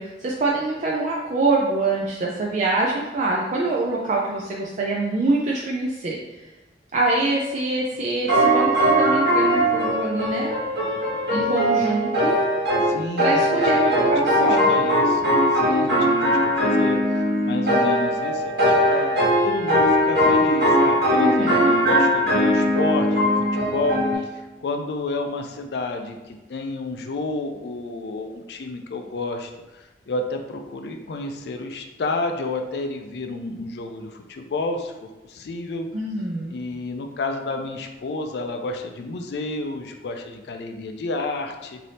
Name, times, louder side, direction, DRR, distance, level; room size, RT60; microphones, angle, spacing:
voice 1, 0.0-6.2 6.9-10.6 11.3-12.4 13.2-14.7 21.2-21.7 35.9-36.6, right 2 dB, 45° right, -3 dB, 0.4 m, -24 dB
sound 1, 8.3-24.1, equal, 70° right, 1.4 m, -20 dB
voice 2, 12.8-35.9 36.5-41.8, left 2 dB, 65° left, 5 dB, 0.4 m, -31 dB
3.3 x 2.7 x 4.0 m, 1.1 s
head